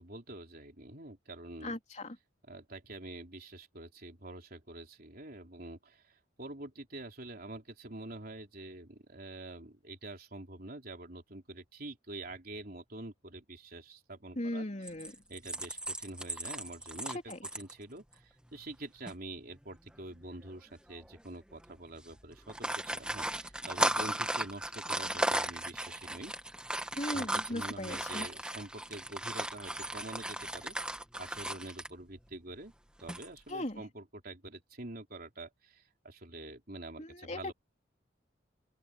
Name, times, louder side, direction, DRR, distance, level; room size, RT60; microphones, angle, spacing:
voice 1, 0.0-1.8 2.5-14.7 15.3-26.3 27.1-32.7 33.0-37.5, right 2 dB, 50° right, 4.0 m, -46 dB
voice 2, 1.6-2.2 14.4-15.2 17.1-17.4 27.0-28.3 33.5-33.8 37.0-37.5, left 1 dB, 35° left, 3.5 m, -38 dB
sound 1, 14.9-17.7 18.1-18.2 18.5-18.7 19.1-19.2 20.1-20.5 21.0-21.2 21.5-21.7 22.3-31.9 33.0-33.5, right 1 dB, 5° right, 1.5 m, -36 dB
open air
head